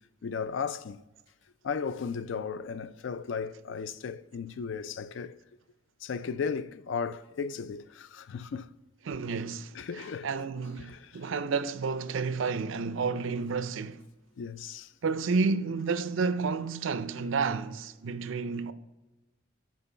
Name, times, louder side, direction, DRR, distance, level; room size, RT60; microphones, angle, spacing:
voice 1, 0.2-1.0 1.6-5.4 6.0-8.7 9.7-10.3 10.8-11.1 14.4-14.9, left 6 dB, 60° left, 0.4 m, -35 dB
voice 2, 9.1-14.0 15.0-18.7, right 4 dB, 70° right, 0.4 m, -31 dB
7.0 x 4.4 x 5.6 m
head